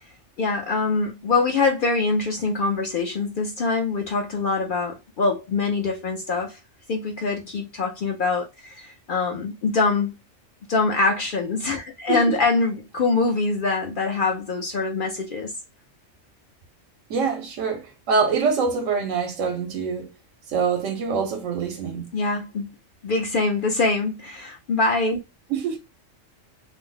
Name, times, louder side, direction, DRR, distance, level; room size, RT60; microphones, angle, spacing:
voice 1, 0.4-6.6 6.9-10.2 10.7-15.5 22.1-22.7 23.0-25.2, left 3 dB, 60° left, 0.6 m, -24 dB
voice 2, 12.1-12.4 17.1-20.1 20.5-22.1 25.5-25.8, right 5 dB, 80° right, 1.0 m, -25 dB
2.5 x 2.0 x 3.7 m
omnidirectional pair, 1.3 m